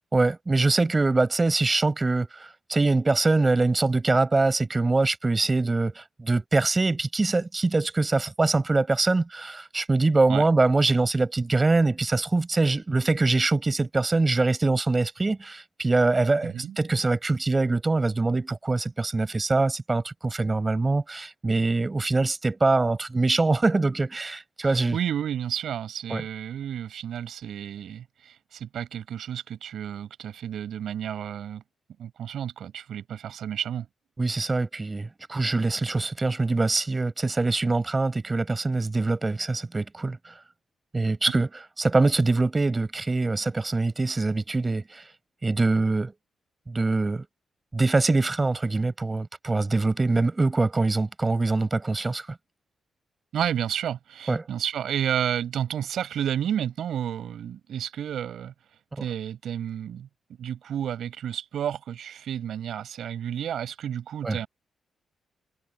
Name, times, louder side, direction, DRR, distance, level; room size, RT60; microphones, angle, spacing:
voice 1, 0.1-25.0 26.1-26.2 34.2-40.3 40.9-41.5 41.8-45.0 45.4-46.1 46.7-47.2 47.7-52.3 54.3-54.5 64.2-64.4, right 3 dB, 30° right, 6.0 m, -24 dB
voice 2, 24.6-31.6 32.0-33.9 53.3-58.5 59.0-60.1 60.4-64.5, right 9 dB, 75° right, 6.0 m, -31 dB
cardioid pair, 65°, 0 cm